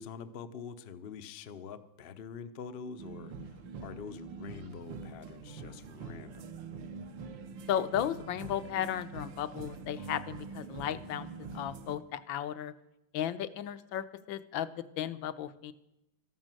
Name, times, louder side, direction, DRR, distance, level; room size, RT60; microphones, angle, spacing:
voice 1, 0.0-6.6, left 6 dB, 60° left, 10 dB, 0.6 m, -45 dB
sound 1, 3.0-12.0, right 4 dB, 70° right, 1.7 m, -44 dB
voice 2, 7.7-11.3 11.5-12.7 13.1-14.7 15.0-15.7, left 10 dB, 75° left, 12 dB, 1.4 m, -34 dB
13.0 x 11.5 x 7.6 m, 0.89 s
omnidirectional pair, 2.2 m